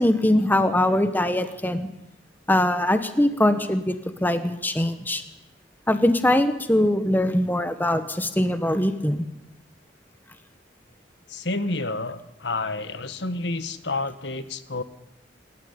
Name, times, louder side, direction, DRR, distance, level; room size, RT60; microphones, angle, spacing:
voice 1, 0.0-1.9 2.5-3.9 4.2-5.2 5.9-9.2, left 1 dB, 10° left, 10 dB, 1.3 m, -22 dB
voice 2, 11.3-14.8, left 2 dB, 65° left, 12 dB, 1.5 m, -29 dB
27.0 x 14.0 x 9.7 m, 0.88 s
head